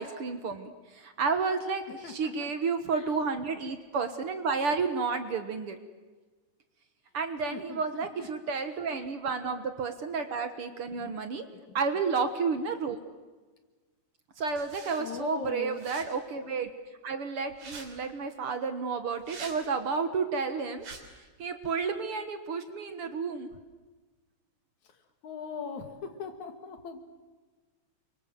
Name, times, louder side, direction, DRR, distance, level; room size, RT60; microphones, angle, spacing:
voice 1, 0.0-5.8 7.1-11.5 11.7-13.0 14.4-16.7 17.0-20.9 21.4-23.5, right 5 dB, 55° right, 8 dB, 2.0 m, -31 dB
voice 2, 2.0-2.5 2.9-3.1 7.5-8.3 8.9-9.0 11.0-11.2 11.7-11.8 15.0-15.9 25.2-27.0, left 6 dB, 70° left, 7 dB, 3.4 m, -40 dB
sound 1, 14.5-15.0 15.7-16.1 17.5-17.9 19.2-19.6 20.8-21.0, right 4 dB, 75° right, 4.7 m, -44 dB
28.5 x 24.5 x 7.7 m, 1.3 s
omnidirectional pair, 3.4 m